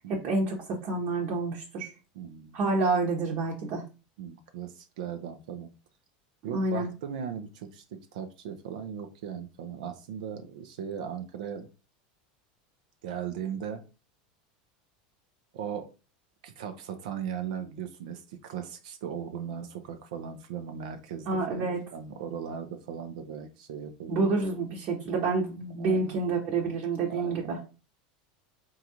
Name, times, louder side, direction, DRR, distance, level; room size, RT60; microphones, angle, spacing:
voice 1, 0.1-1.9 2.5-3.8 6.5-6.9 21.3-21.8 24.1-27.6, right 3 dB, 55° right, -2 dB, 1.0 m, -28 dB
voice 2, 2.1-2.6 4.2-5.7 6.4-11.7 13.0-13.8 15.5-15.9 16.4-24.3 25.8-26.2 27.1-27.5, right 8 dB, 80° right, 8 dB, 0.5 m, -38 dB
3.7 x 2.4 x 2.8 m, 0.31 s
supercardioid pair, 125°, 4 cm